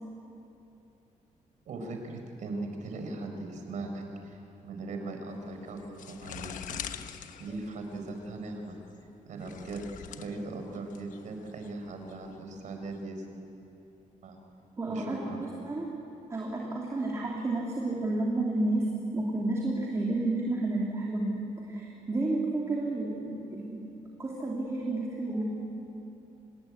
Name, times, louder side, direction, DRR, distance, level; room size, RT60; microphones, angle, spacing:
voice 1, 1.7-4.4 4.6-7.1 7.4-8.8 9.3-9.8 10.2-13.2 14.2-14.4 14.9-15.4, right 2 dB, 70° right, 4 dB, 4.6 m, -39 dB
sound 1, 5.3-13.0, left 9 dB, 75° left, 1.2 m, -45 dB
voice 2, 14.8-15.9 16.3-23.9 24.2-25.4, right 2 dB, 20° right, -3 dB, 3.1 m, -31 dB
26.5 x 20.5 x 9.9 m, 2.9 s
cardioid pair, 155°, 13 cm